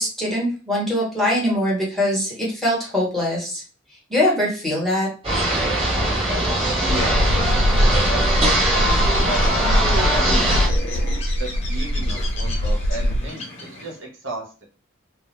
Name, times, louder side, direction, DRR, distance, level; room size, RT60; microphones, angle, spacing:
voice 1, 0.0-3.6 4.1-5.1, left 1 dB, ahead, -4 dB, 1.0 m, -22 dB
sound 1, 5.2-10.7, right 1 dB, 30° right, 0.9 m, -21 dB
voice 2, 6.8-7.3 8.0-10.8 11.4-14.6, right 2 dB, 70° right, -1 dB, 0.8 m, -33 dB
sound 2, 6.9-13.3, equal, 75° left, 0.3 m, -22 dB
Bird, 7.4-14.0, left 2 dB, 35° left, 0.7 m, -35 dB
2.2 x 2.0 x 3.0 m, 0.35 s
head